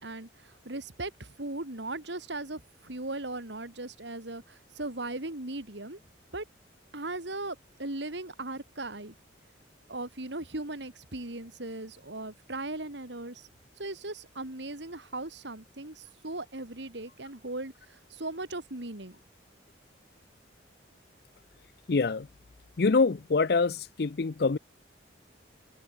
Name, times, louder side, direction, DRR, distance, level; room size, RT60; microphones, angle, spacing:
voice 1, 0.0-6.0 6.3-6.4 6.9-9.1 9.9-13.5 13.8-19.2, right 2 dB, 70° right, 2.7 m, -38 dB
voice 2, 21.9-22.3 22.8-24.6, left 4 dB, 55° left, 0.5 m, -25 dB
head